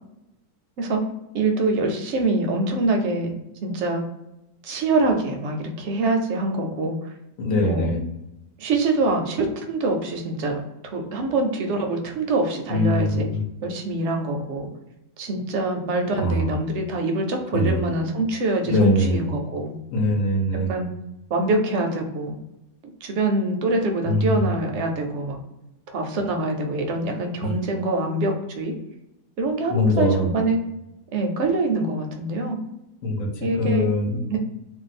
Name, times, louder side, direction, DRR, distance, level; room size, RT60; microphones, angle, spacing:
voice 1, 1.3-3.3 3.6-4.0 4.6-7.0 7.6-7.9 8.6-13.3 13.6-14.7 15.2-19.7 20.5-20.9 21.3-22.4 23.0-25.4 25.9-28.7 29.4-30.6 31.1-32.6 33.4-33.9 34.3-34.4, right 2 dB, 65° right, 3 dB, 0.8 m, -24 dB
voice 2, 7.4-8.0 12.7-13.4 16.2-16.5 17.5-17.9 18.6-19.2 19.9-20.7 24.0-24.5 27.4-27.6 29.7-30.3 33.0-34.2, left 1 dB, 70° left, 1 dB, 1.0 m, -22 dB
2.6 x 2.2 x 4.1 m, 0.91 s
omnidirectional pair, 1.5 m